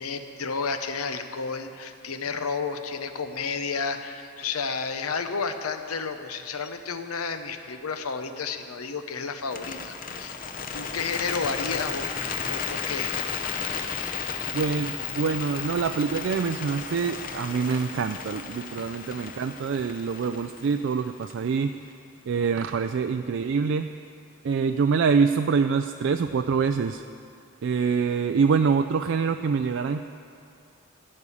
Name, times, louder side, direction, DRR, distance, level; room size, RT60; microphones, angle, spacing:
voice 1, 0.0-10.4 10.7-13.7, left 5 dB, 90° left, 8 dB, 0.8 m, -32 dB
Bird, 9.4-21.6, left 6 dB, 40° left, 0.7 m, -34 dB
voice 2, 14.5-21.8 22.3-23.9 24.4-27.0 27.6-30.0, right 5 dB, 60° right, 8 dB, 0.3 m, -25 dB
15.5 x 5.5 x 8.5 m, 2.6 s
head